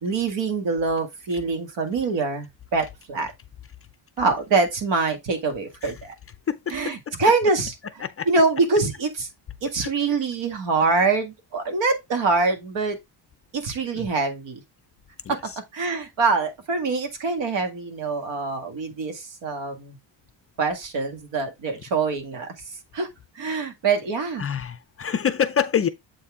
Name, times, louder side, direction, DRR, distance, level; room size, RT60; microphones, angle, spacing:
voice 1, 0.0-3.3 4.2-6.1 6.7-9.3 9.6-13.0 13.5-14.6 15.3-15.4 15.7-20.0 20.6-22.5 22.9-23.1 23.4-24.4, right 4 dB, 70° right, 2.0 m, -24 dB
voice 2, 6.5-7.1 8.0-8.3 9.8-9.9 13.9-14.1 15.2-15.6 24.4-25.9, left 8 dB, 30° left, 0.4 m, -26 dB
7.8 x 4.2 x 3.6 m
cardioid pair, 145°, 46 cm